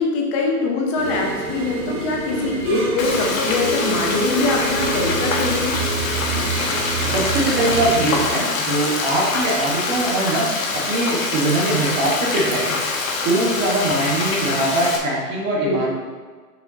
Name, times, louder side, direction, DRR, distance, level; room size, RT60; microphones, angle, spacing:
voice 1, 0.0-5.7 15.6-15.9, left 3 dB, 20° left, 0 dB, 0.7 m, -23 dB
sound 1, 0.9-8.3, right 4 dB, 45° right, 1.9 m, -27 dB
Frying (food), 3.0-15.0, left 4 dB, 55° left, 1.2 m, -25 dB
voice 2, 7.1-10.5 10.9-12.8 13.2-15.9, right 2 dB, 20° right, -4 dB, 1.4 m, -21 dB
6.2 x 6.0 x 2.8 m, 1.5 s
hypercardioid pair, 145°, 49 cm